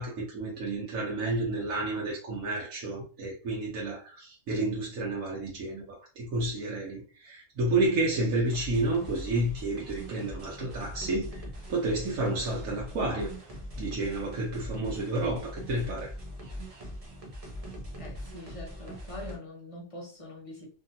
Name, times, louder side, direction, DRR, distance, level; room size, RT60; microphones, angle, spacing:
voice 1, 0.0-13.3 13.8-16.1, right 2 dB, 85° right, 1.2 m, -30 dB
sound 1, 8.5-19.4, equal, 35° right, 0.6 m, -41 dB
voice 2, 18.0-20.7, left 1 dB, 30° left, 0.8 m, -43 dB
2.9 x 2.6 x 2.6 m
omnidirectional pair, 1.4 m